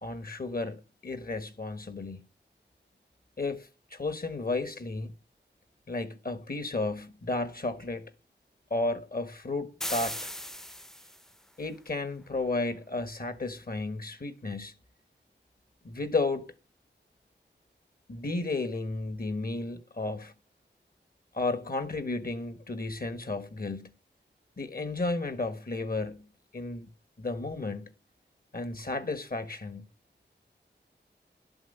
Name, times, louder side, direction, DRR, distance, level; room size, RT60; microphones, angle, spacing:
voice 1, 0.0-2.2 3.4-5.1 5.9-8.1 8.7-10.3 11.6-14.7 15.8-16.5 18.1-20.3 21.3-23.9 24.6-26.3 26.5-26.9 27.2-27.9 28.5-29.8, left 3 dB, 50° left, 1.4 m, -33 dB
sound 1, 9.8-11.4, equal, ahead, 0.5 m, -37 dB
12.0 x 7.9 x 6.7 m
wide cardioid pair, 80°, 19 cm